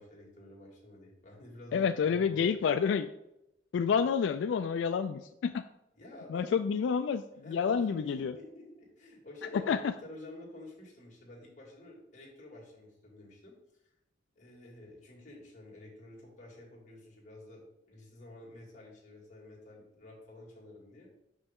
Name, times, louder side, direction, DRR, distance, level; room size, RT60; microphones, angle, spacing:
voice 1, 0.0-2.6 6.0-6.6 7.4-13.5 14.4-21.1, left 1 dB, 40° left, -3 dB, 2.0 m, -50 dB
voice 2, 1.7-3.1 3.7-5.6 6.3-8.3 9.7-9.9, left 6 dB, 85° left, 9 dB, 0.3 m, -29 dB
6.0 x 5.4 x 3.6 m, 0.86 s
head